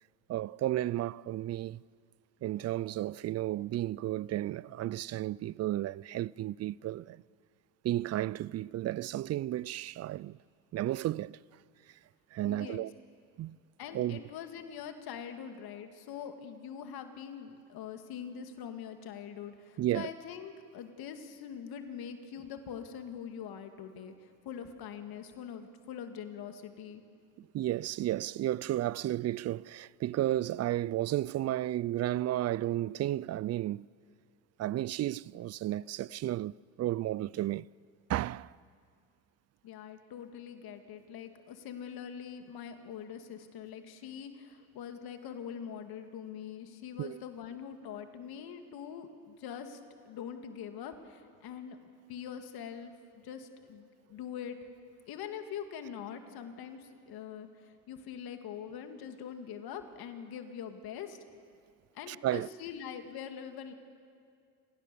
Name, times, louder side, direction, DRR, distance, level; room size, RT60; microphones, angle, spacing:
voice 1, 0.3-1.8 2.4-7.2 7.8-10.4 10.7-11.4 12.3-12.9 13.4-13.6 13.9-14.2 19.8-20.1 27.4-33.9 34.6-36.5 36.8-37.7 38.1-38.6 47.0-47.2 62.1-62.5, right 14 dB, 40° right, 0.4 m, -33 dB
voice 2, 12.4-12.9 13.8-27.0 39.6-49.8 50.1-51.8 52.1-54.6 55.1-61.2 61.9-63.7, left 8 dB, 65° left, 2.2 m, -43 dB
29.0 x 16.5 x 6.9 m
supercardioid pair, 80°, 40 cm